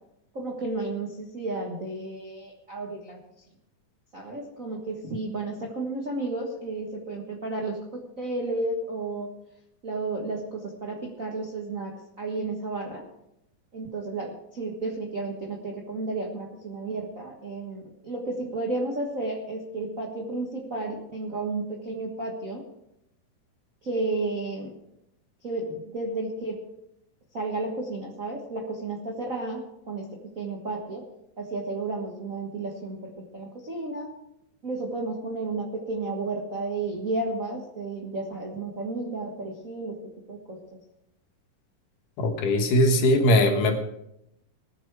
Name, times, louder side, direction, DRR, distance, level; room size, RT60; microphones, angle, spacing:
voice 1, 0.3-3.2 4.1-9.3 9.8-11.9 12.2-13.0 13.7-22.6 23.8-24.7 25.4-26.6 27.3-31.0 31.4-34.1 34.6-40.0 40.3-40.6, right 2 dB, 45° right, -2 dB, 1.1 m, -32 dB
voice 2, 42.2-43.8, left 1 dB, 75° left, 5 dB, 2.8 m, -20 dB
20.5 x 7.3 x 4.8 m, 0.82 s
omnidirectional pair, 3.9 m